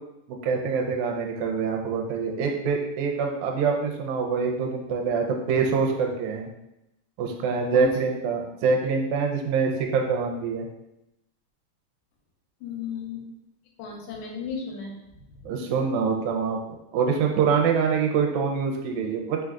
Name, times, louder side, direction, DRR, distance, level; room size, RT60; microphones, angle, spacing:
voice 1, 0.3-6.5 7.2-10.7 15.4-16.6 16.9-19.4, right 5 dB, 80° right, 2 dB, 1.8 m, -25 dB
voice 2, 12.6-13.3 13.8-15.0 15.3-15.4, left 5 dB, 75° left, 0 dB, 2.1 m, -34 dB
4.5 x 3.7 x 2.3 m, 0.87 s
omnidirectional pair, 3.7 m